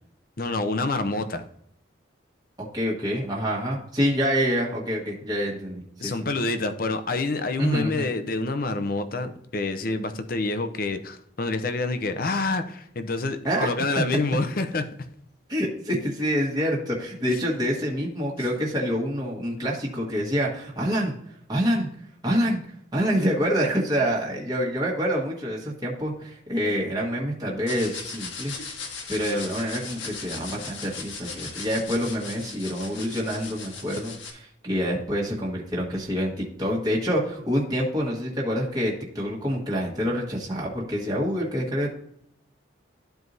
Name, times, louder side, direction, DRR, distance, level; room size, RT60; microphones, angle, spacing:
voice 1, 0.4-1.4 6.0-14.9 17.2-17.5, left 3 dB, 50° left, 8 dB, 0.7 m, -27 dB
voice 2, 2.7-6.2 7.6-8.1 13.4-13.7 15.5-21.1 21.5-21.9 22.2-22.6 22.9-28.5 29.1-41.9, equal, 20° right, -4 dB, 1.5 m, -26 dB
sound 1, 27.7-34.3, left 5 dB, 80° left, 1.5 m, -38 dB
12.5 x 4.6 x 2.7 m, 0.73 s
head